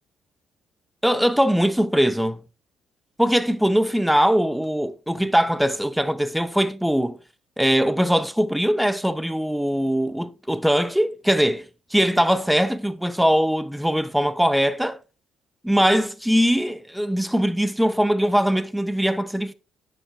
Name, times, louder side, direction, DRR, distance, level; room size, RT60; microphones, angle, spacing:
voice 1, 1.0-2.4 3.2-7.2 7.6-15.0 15.6-19.5, equal, 5° right, 0.7 m, -21 dB
10.0 x 7.0 x 2.5 m
cardioid pair, 90°, 0 cm